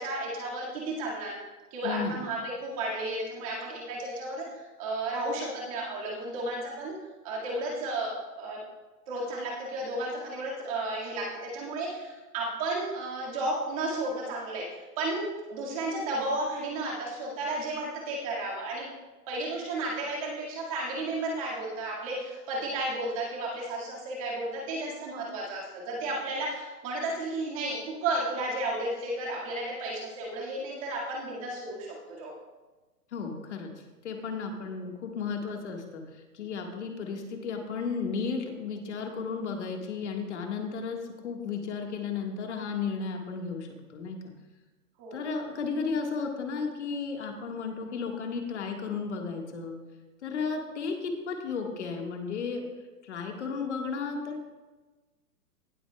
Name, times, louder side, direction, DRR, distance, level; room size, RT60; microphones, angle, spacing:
voice 1, 0.0-1.4 1.7-7.0 7.2-8.6 9.1-18.9 19.3-32.3 45.0-45.2, right 2 dB, 20° right, -4 dB, 1.9 m, -33 dB
voice 2, 1.8-2.2 33.1-33.7 34.0-44.2 45.1-49.8 50.2-52.6 53.0-54.5, left 5 dB, 45° left, 2 dB, 1.6 m, -34 dB
18.0 x 8.1 x 2.3 m, 1.2 s
hypercardioid pair, 175°, 48 cm